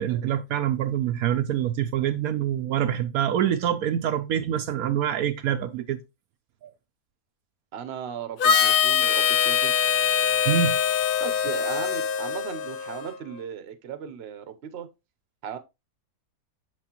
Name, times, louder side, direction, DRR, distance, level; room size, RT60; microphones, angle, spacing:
voice 1, 0.0-6.0 6.6-6.7 10.5-10.7, right 10 dB, 75° right, 1.0 m, -25 dB
voice 2, 7.7-9.7 11.2-14.9 15.4-15.6, right 8 dB, 50° right, 0.9 m, -36 dB
Harmonica, 8.4-13.1, left 8 dB, 85° left, 0.4 m, -23 dB
6.7 x 6.2 x 2.9 m
omnidirectional pair, 1.6 m